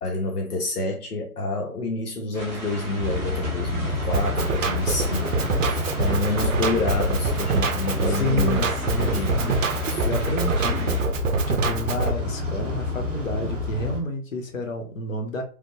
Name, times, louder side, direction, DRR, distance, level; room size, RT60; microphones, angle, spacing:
voice 1, 0.0-8.6 8.9-9.6 9.9-10.1, left 2 dB, 80° left, 0.8 m, -28 dB
sound 1, 2.3-11.0, right 1 dB, 10° left, 0.5 m, -37 dB
sound 2, 3.0-14.0, left 2 dB, 25° right, 0.9 m, -29 dB
Drum kit, 4.1-12.1, right 3 dB, 60° right, 0.6 m, -25 dB
voice 2, 8.1-9.6 10.0-11.0 11.5-15.4, left 1 dB, 60° left, 1.0 m, -30 dB
3.3 x 2.1 x 3.0 m
figure-of-eight pair, 140°, 45 cm